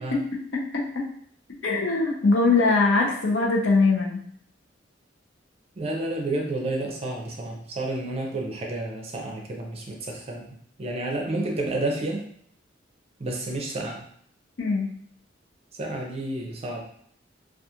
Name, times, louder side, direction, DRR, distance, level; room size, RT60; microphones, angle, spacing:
voice 1, 1.6-4.2 14.6-14.9, left 3 dB, 80° left, -2 dB, 0.7 m, -21 dB
voice 2, 5.8-12.3 13.2-14.0 15.7-16.8, right 2 dB, 35° right, 0 dB, 0.5 m, -30 dB
2.4 x 2.4 x 2.7 m, 0.64 s
head